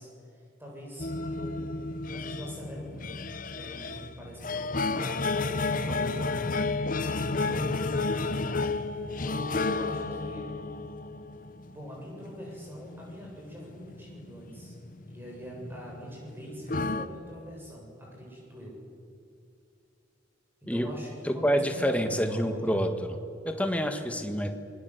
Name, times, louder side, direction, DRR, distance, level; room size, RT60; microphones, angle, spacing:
voice 1, 0.0-1.8 2.1-3.1 3.5-6.5 7.3-8.5 9.0-10.5 11.7-14.7 15.1-18.8 20.6-22.8, equal, 10° right, -2 dB, 7.7 m, -43 dB
sound 1, 1.0-17.1, left 3 dB, 45° left, 1.0 m, -32 dB
voice 2, 21.2-22.9 23.5-24.5, equal, 5° left, 5 dB, 1.8 m, -27 dB
28.5 x 21.0 x 8.1 m, 2.5 s
head